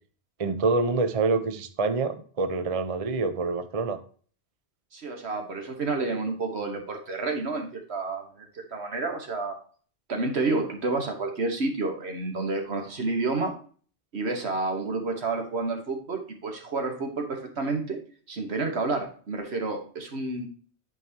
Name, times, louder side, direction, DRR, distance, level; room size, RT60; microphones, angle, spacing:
voice 1, 0.4-4.0, right 3 dB, 40° right, 9 dB, 0.6 m, -26 dB
voice 2, 4.9-9.6 10.1-13.5 14.1-18.0 18.3-20.5, right 3 dB, 70° right, 3 dB, 1.6 m, -30 dB
11.0 x 4.6 x 2.9 m, 0.43 s
omnidirectional pair, 1.1 m